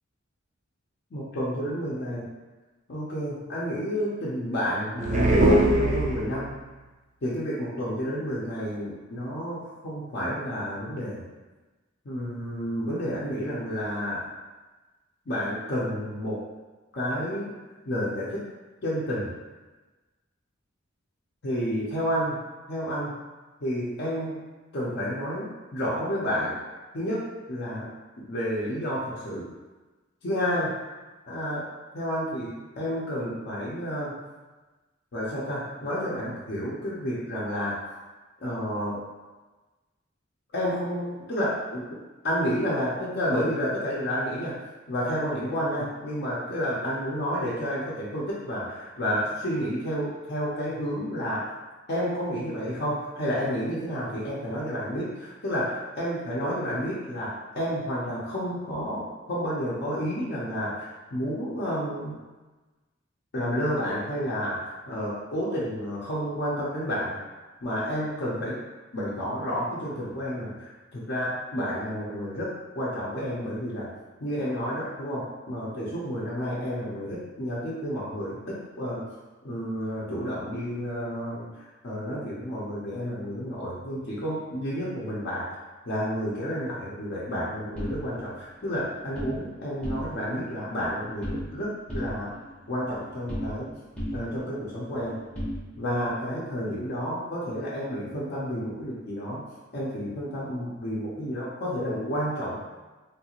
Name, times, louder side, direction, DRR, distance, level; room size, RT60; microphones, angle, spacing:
voice 1, 1.1-2.3 2.9-6.6 7.2-11.3 12.0-14.3 15.3-16.4 16.9-17.6 17.9-18.4 18.8-19.3 21.4-22.4 22.7-23.2 23.6-24.4 24.7-26.5 26.9-27.9 28.2-29.5 30.2-30.8 31.3-31.7 31.9-34.2 35.1-37.8 38.4-39.0 40.5-41.9 42.2-44.6 44.9-51.5 51.9-62.2 63.3-67.2 67.6-68.6 68.9-73.9 74.2-79.1 79.4-85.5 85.9-92.3 92.7-93.7 94.1-95.2 95.8-99.4 99.7-102.6, equal, 55° left, -7 dB, 0.6 m, -30 dB
sound 1, 5.0-6.6, right 1 dB, 40° right, 0.3 m, -21 dB
sound 2, 87.7-89.4 89.7-90.4 90.6-91.6 91.9-93.7 94.0-96.1, equal, 5° left, 0.6 m, -36 dB
3.3 x 2.4 x 2.9 m, 1.2 s
head